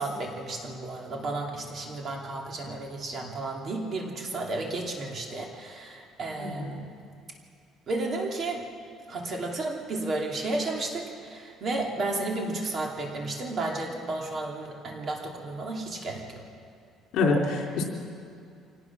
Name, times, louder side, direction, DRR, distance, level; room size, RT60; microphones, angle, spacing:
voice 1, 0.0-6.9 7.9-8.6 9.1-16.4, right 2 dB, 35° right, 0 dB, 2.7 m, -32 dB
voice 2, 6.4-6.8 17.1-17.8, left 3 dB, 60° left, 0 dB, 3.6 m, -26 dB
25.0 x 18.5 x 6.1 m, 2.4 s
cardioid pair, 170°, 0 cm